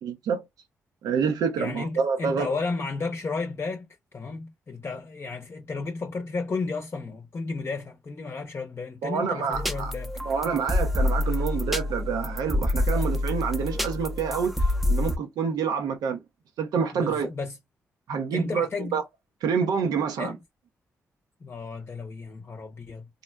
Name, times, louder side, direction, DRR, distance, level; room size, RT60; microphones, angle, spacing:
voice 1, 0.0-0.4 1.0-2.5 9.0-9.9 10.2-16.2 16.6-17.3 18.1-19.0 19.4-20.4, right 6 dB, 75° right, 0.6 m, -27 dB
voice 2, 1.6-10.1 16.9-17.6 18.3-18.9 20.2-20.3 21.4-23.1, left 4 dB, 40° left, 0.7 m, -33 dB
sound 1, 9.5-15.2, left 1 dB, ahead, 0.6 m, -27 dB
3.7 x 2.1 x 2.2 m
hypercardioid pair, 40°, 7 cm